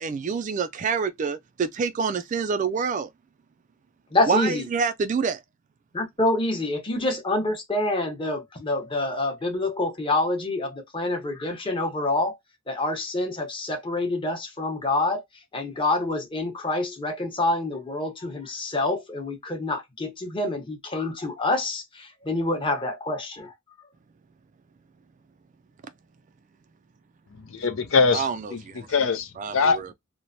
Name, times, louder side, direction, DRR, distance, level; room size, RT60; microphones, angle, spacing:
voice 1, 0.0-3.1 4.3-5.4 28.1-28.4 28.7-28.9 29.4-29.9, right 5 dB, 35° right, 0.3 m, -27 dB
voice 2, 4.1-4.6 5.9-12.4 12.7-15.2 15.5-23.5, left 2 dB, 25° left, 0.9 m, -27 dB
voice 3, 27.3-29.9, left 4 dB, 70° left, 0.5 m, -24 dB
3.0 x 2.1 x 2.6 m
head